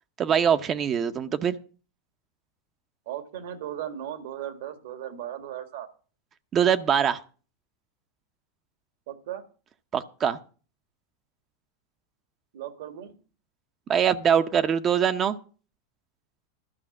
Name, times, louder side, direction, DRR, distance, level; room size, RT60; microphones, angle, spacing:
voice 1, 0.2-1.6 6.5-7.2 9.9-10.4 13.9-15.4, right 8 dB, 35° right, 0.7 m, -23 dB
voice 2, 3.0-5.9 9.1-9.4 12.5-13.2, right 11 dB, 70° right, 1.8 m, -36 dB
12.5 x 5.6 x 7.3 m
hypercardioid pair, 110°, 0 cm